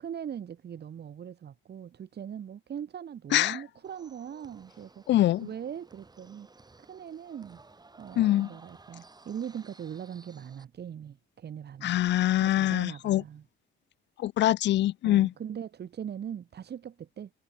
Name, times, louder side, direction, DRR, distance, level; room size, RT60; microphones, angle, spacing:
voice 1, 0.0-5.0 5.4-6.5 6.9-7.6 8.0-13.4 15.0-17.3, right 8 dB, 55° right, 3.3 m, -40 dB
sound 1, 3.8-10.6, right 3 dB, 20° right, 2.7 m, -56 dB
voice 2, 5.1-5.5 8.2-8.5 11.8-13.2 14.2-15.3, left 14 dB, 65° left, 0.4 m, -24 dB
cardioid pair, 90°, 20 cm